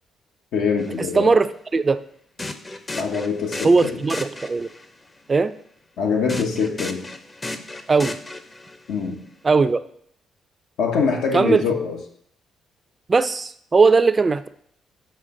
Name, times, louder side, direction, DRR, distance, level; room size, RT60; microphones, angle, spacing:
voice 1, 0.5-1.3 3.0-4.0 6.0-7.0 8.9-9.2 10.8-12.0, left 5 dB, 85° left, 2 dB, 1.1 m, -23 dB
sound 1, 0.8-0.9 2.4-4.9 6.3-8.9, left 2 dB, 25° left, 0.6 m, -34 dB
voice 2, 1.1-1.5 1.7-2.0 3.6-4.7 5.3-5.5 7.9-8.2 9.4-9.8 11.3-11.6 13.1-14.5, right 4 dB, 30° right, 12 dB, 0.3 m, -18 dB
6.5 x 4.5 x 3.7 m, 0.66 s
cardioid pair, 90°, 0 cm